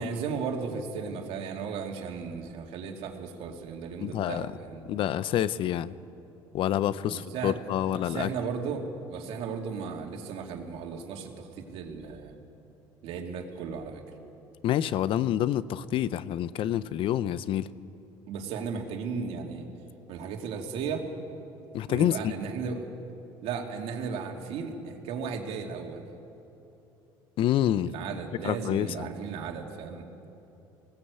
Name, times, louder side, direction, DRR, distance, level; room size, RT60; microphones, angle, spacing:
voice 1, 0.0-4.9 7.0-7.6 8.0-12.4 13.0-14.0 18.3-19.6 20.1-21.1 21.9-22.9 23.4-26.0 27.9-30.1, right 5 dB, 70° right, 3 dB, 2.5 m, -35 dB
voice 2, 4.0-4.5 4.9-5.9 6.5-8.3 14.6-17.7 21.7-22.3 27.4-27.9 28.4-29.1, left 11 dB, 60° left, 16 dB, 0.7 m, -27 dB
20.0 x 17.0 x 8.2 m, 2.9 s
supercardioid pair, 85°, 10 cm